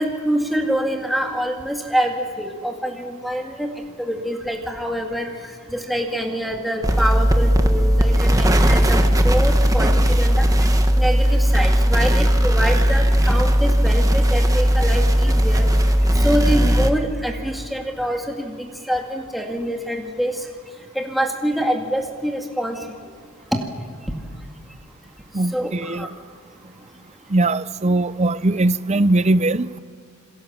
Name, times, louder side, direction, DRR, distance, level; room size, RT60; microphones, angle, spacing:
voice 1, 0.0-3.7 4.0-10.5 10.9-15.7 16.2-20.5 21.0-22.8 23.5-23.6 25.5-26.1, equal, ahead, 1 dB, 2.1 m, -25 dB
sound 1, 6.8-16.9, equal, 15° right, 1.6 m, -17 dB
voice 2, 25.3-26.1 27.3-29.8, right 2 dB, 30° right, 15 dB, 0.6 m, -20 dB
28.0 x 22.5 x 7.4 m, 2.1 s
head